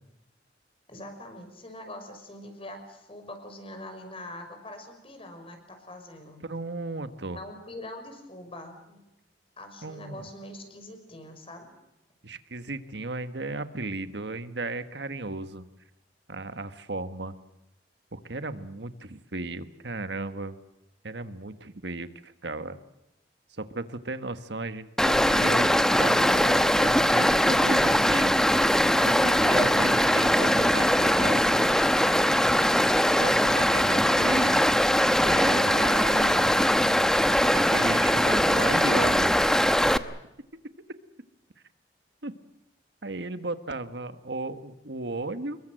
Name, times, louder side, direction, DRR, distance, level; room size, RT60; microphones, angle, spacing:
voice 1, 0.9-6.4 7.4-9.0 9.6-11.7, left 1 dB, 30° left, 6 dB, 5.9 m, -43 dB
voice 2, 6.4-7.4 9.8-10.2 12.2-15.6 16.3-17.3 18.1-20.6 21.0-22.8 23.5-25.7 26.0-28.3 29.0-31.4 33.2-34.6 35.2-36.7 37.5-39.3 42.2-42.3 43.0-45.6, right 2 dB, 70° right, 10 dB, 1.5 m, -35 dB
Stream, 25.0-40.0, equal, 5° left, 0.9 m, -21 dB
26.5 x 22.5 x 7.8 m, 0.88 s
head